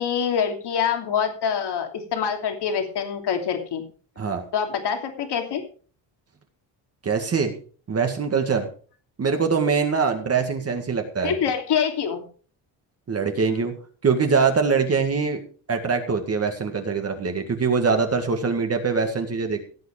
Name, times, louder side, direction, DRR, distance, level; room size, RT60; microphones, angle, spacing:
voice 1, 0.0-3.8 4.5-5.6 11.2-12.2, left 7 dB, 60° left, 4 dB, 3.1 m, -25 dB
voice 2, 7.0-7.5 7.9-8.7 9.2-11.4 13.1-13.7 14.0-15.4 15.7-19.7, right 5 dB, 30° right, 5 dB, 1.9 m, -23 dB
17.0 x 8.3 x 4.9 m, 0.41 s
cardioid pair, 145°, 45 cm